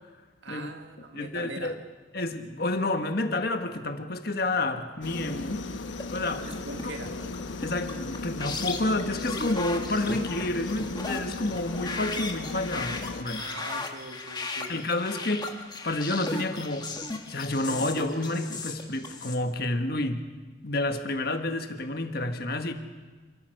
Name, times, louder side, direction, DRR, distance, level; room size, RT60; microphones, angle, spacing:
voice 1, 0.4-1.7 6.4-7.5 13.3-14.7, right 2 dB, 80° right, 5 dB, 2.1 m, -42 dB
voice 2, 1.1-1.7 2.1-5.6 6.1-6.6 7.6-13.4 14.7-15.5 15.8-16.9 17.3-20.2 20.6-22.7, left 2 dB, 55° left, 6 dB, 1.6 m, -29 dB
sound 1, 5.0-13.2, left 3 dB, 85° left, 1.2 m, -37 dB
sound 2, 6.0-19.4, left 3 dB, 25° left, 1.6 m, -36 dB
28.0 x 14.0 x 6.5 m, 1.4 s
head